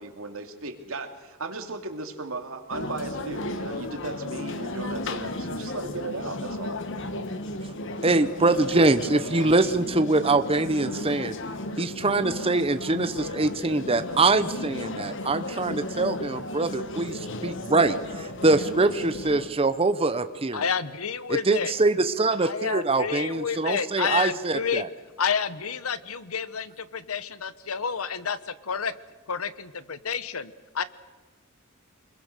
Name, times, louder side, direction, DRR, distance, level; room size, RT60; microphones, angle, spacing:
voice 1, 0.0-6.8, right 3 dB, 70° right, 5 dB, 2.6 m, -36 dB
sound 1, 2.7-19.5, left 2 dB, 60° left, 1.5 m, -34 dB
voice 2, 8.0-11.4 11.8-20.6 21.3-24.9, right 3 dB, 25° right, 10 dB, 0.8 m, -24 dB
voice 3, 20.5-21.7 22.4-24.9 25.2-28.9 29.3-30.8, left 6 dB, 80° left, 15 dB, 1.1 m, -30 dB
25.5 x 22.5 x 6.7 m, 1.3 s
head